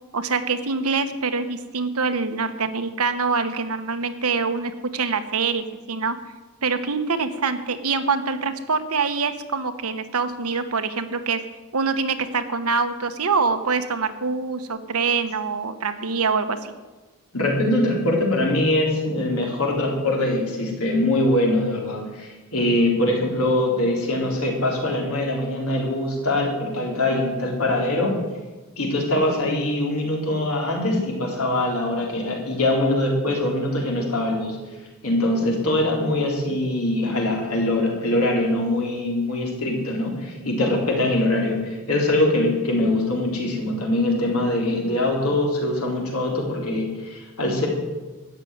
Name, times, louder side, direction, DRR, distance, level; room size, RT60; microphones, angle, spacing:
voice 1, 0.1-6.1 6.6-11.4 11.7-16.7, right 4 dB, 75° right, 9 dB, 1.2 m, -25 dB
voice 2, 17.3-28.2 28.8-34.6 35.0-47.7, left 1 dB, 75° left, -1 dB, 3.9 m, -23 dB
13.0 x 7.6 x 9.5 m, 1.2 s
head